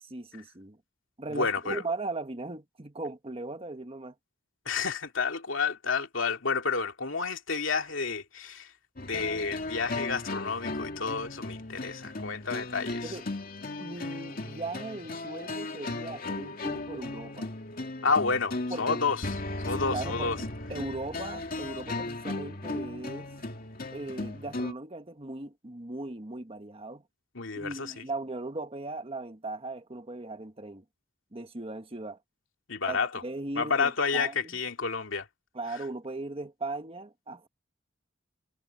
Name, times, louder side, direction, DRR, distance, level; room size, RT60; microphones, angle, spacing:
voice 1, 0.1-0.8 1.2-4.1 13.0-13.2 13.8-17.5 18.7-19.0 19.7-20.3 20.7-23.3 23.9-27.0 27.6-30.8 31.3-32.2 32.9-34.5 35.5-37.5, right 2 dB, 30° right, 1.5 m, -38 dB
voice 2, 1.3-1.8 4.7-8.7 9.0-13.1 18.0-19.4 19.6-20.4 27.3-28.1 32.7-33.2 33.5-35.3, left 5 dB, 80° left, 2.5 m, -30 dB
sound 1, 9.0-24.7, left 2 dB, 50° left, 2.4 m, -36 dB
head